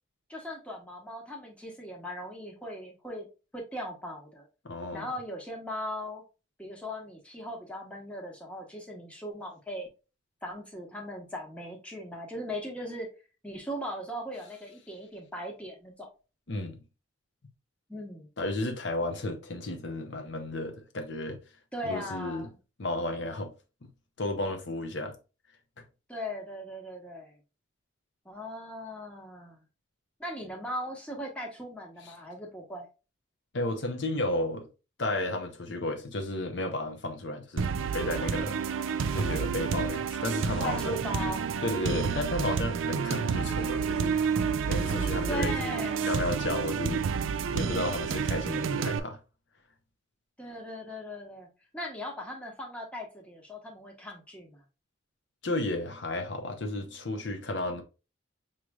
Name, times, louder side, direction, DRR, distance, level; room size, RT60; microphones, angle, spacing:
voice 1, 0.3-3.3 3.5-4.5 4.9-6.2 6.6-9.9 10.4-13.1 13.4-16.1 17.9-18.3 21.7-22.6 26.1-27.4 28.2-29.6 30.2-32.9 40.6-41.4 45.3-46.1 50.4-51.5 51.7-54.6, equal, 5° left, 1.0 m, -38 dB
voice 2, 4.6-5.1 16.5-16.8 18.4-21.4 21.8-22.5 22.8-23.5 24.2-25.1 32.0-32.2 33.5-34.7 35.0-37.7 37.9-38.6 39.1-40.9 41.6-44.3 44.7-47.1 47.3-49.2 55.4-57.8, left 2 dB, 60° left, 0.7 m, -33 dB
sound 1, 37.6-49.0, right 6 dB, 75° right, 0.4 m, -29 dB
5.7 x 3.1 x 2.3 m
head